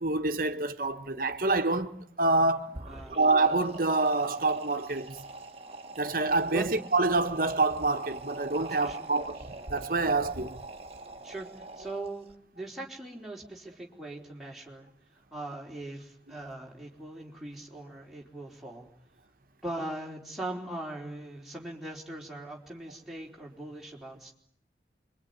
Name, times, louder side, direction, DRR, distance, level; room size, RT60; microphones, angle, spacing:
voice 1, 0.0-2.8 3.1-5.2 6.0-10.6, right 3 dB, 50° right, 1.5 m, -27 dB
sound 1, 2.6-12.3, right 2 dB, 35° right, 1.5 m, -44 dB
voice 2, 2.9-3.2 6.5-6.7 8.7-9.1 11.2-11.5 11.8-12.3 12.5-14.9 15.3-18.9 19.6-24.3, right 2 dB, ahead, 4.2 m, -40 dB
26.5 x 23.5 x 9.7 m
head